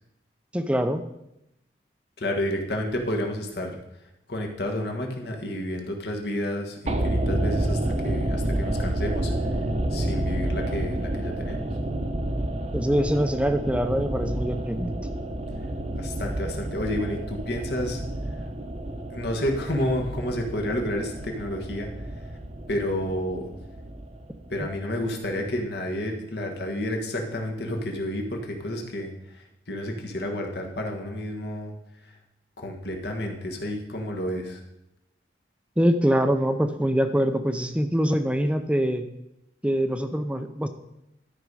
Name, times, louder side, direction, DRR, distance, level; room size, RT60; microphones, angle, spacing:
voice 1, 0.5-1.0 12.7-14.9 35.8-39.0 39.6-40.7, equal, 5° right, 8 dB, 0.5 m, -24 dB
voice 2, 2.2-3.8 4.3-9.3 9.9-11.7 16.0-18.0 19.1-21.9 22.7-23.5 24.5-31.7 32.1-32.2 32.6-34.6, left 1 dB, 60° left, 2 dB, 1.5 m, -30 dB
sound 1, 6.9-25.1 25.3-25.4, right 1 dB, 35° right, 0.8 m, -29 dB
12.5 x 5.3 x 4.8 m, 0.86 s
head